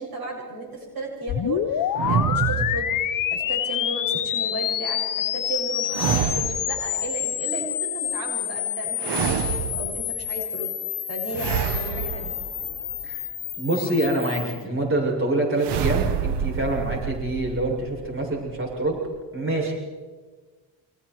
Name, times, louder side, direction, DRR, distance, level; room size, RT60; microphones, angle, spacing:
voice 1, 0.0-10.7 11.1-12.5, right 2 dB, 55° right, 0 dB, 7.2 m, -34 dB
sound 1, 1.3-14.6, left 11 dB, 50° left, 1.1 m, -28 dB
sound 2, 1.9-3.5 5.9-6.9 9.0-10.2 11.3-13.1 15.6-19.2, right 8 dB, 80° right, 1.3 m, -28 dB
voice 2, 13.6-19.0 19.3-19.8, right 2 dB, 30° right, -1 dB, 7.8 m, -25 dB
29.5 x 26.5 x 4.8 m, 1.4 s
cardioid pair, 130°, 41 cm